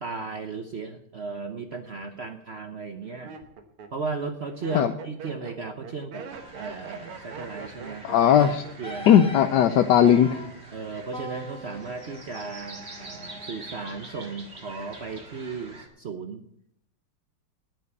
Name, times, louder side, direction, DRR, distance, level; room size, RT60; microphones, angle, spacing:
voice 1, 0.0-3.3 3.9-6.3 6.6-8.0 8.8-9.2 10.7-16.4, right 4 dB, 60° right, 6 dB, 0.6 m, -35 dB
Laughter, 2.1-2.2 2.9-9.5 9.8-10.3, right 6 dB, 85° right, 2.2 m, -42 dB
sound 1, 6.3-15.9, right 2 dB, 30° right, 2.3 m, -45 dB
voice 2, 8.0-8.6 9.1-10.4, left 9 dB, 65° left, 8 dB, 1.1 m, -18 dB
Wind instrument woodwind instrument, 8.4-9.5 10.1-10.5 11.1-14.1, equal, 5° left, 1.1 m, -42 dB
9.9 x 9.2 x 8.3 m, 0.70 s
omnidirectional pair, 2.3 m